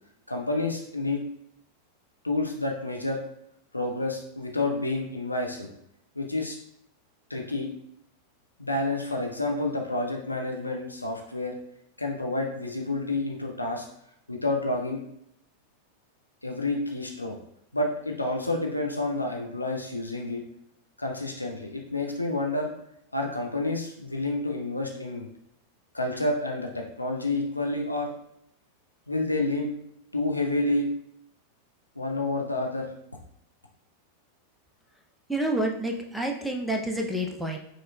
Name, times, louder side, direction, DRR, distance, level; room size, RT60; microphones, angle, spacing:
voice 1, 0.3-1.2 2.2-3.2 3.7-5.7 6.1-6.6 7.3-7.7 8.6-11.5 12.0-13.8 14.3-15.0 16.4-17.4 17.7-20.4 21.0-22.7 23.1-25.3 25.9-28.1 29.1-29.7 30.1-30.9 32.0-32.9, left 2 dB, 85° left, 1 dB, 0.6 m, -29 dB
voice 2, 35.3-37.6, right 1 dB, ahead, 1 dB, 0.6 m, -28 dB
5.3 x 2.9 x 2.3 m, 0.75 s
figure-of-eight pair, 90°, 0 cm